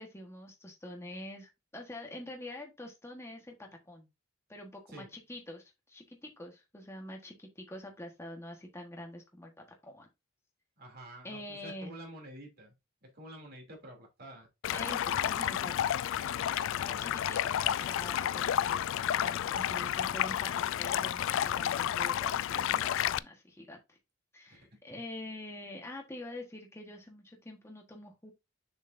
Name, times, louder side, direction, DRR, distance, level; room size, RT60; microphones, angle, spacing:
voice 1, 0.0-4.1 4.5-9.5 9.8-10.1 11.2-12.0 14.7-15.7 16.8-24.0 24.3-28.3, left 1 dB, 15° left, 1.3 m, -46 dB
voice 2, 10.8-12.7 13.0-14.5 16.9-17.1 19.7-20.2 24.5-24.7, right 1 dB, 50° right, 2.8 m, -49 dB
Stream, 14.6-23.2, left 10 dB, 65° left, 0.3 m, -31 dB
7.1 x 6.5 x 2.6 m
head